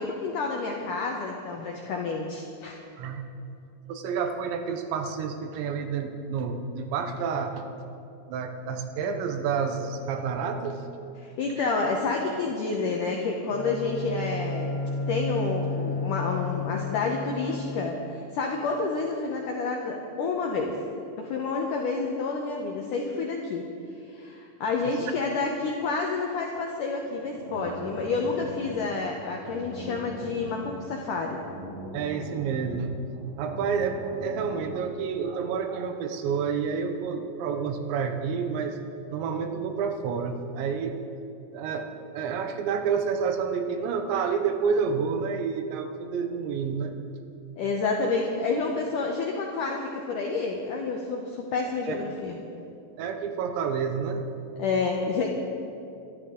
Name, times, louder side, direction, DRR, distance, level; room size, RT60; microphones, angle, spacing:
voice 1, 0.0-2.8 11.2-14.7 15.1-20.8 21.2-23.7 24.1-31.4 47.6-52.4 54.6-55.3, left 4 dB, 80° left, 0 dB, 1.9 m, -29 dB
voice 2, 3.9-7.6 8.3-10.8 24.8-25.1 31.9-33.0 33.4-38.8 39.1-41.0 41.5-46.9 51.9-52.0 53.0-54.2, right 6 dB, 85° right, 6 dB, 3.3 m, -29 dB
Bowed string instrument, 13.4-18.3, left 3 dB, 60° left, 2.5 m, -32 dB
sound 1, 27.0-34.9, right 1 dB, 40° right, 4.0 m, -41 dB
23.0 x 13.0 x 3.9 m, 2.6 s
omnidirectional pair, 5.1 m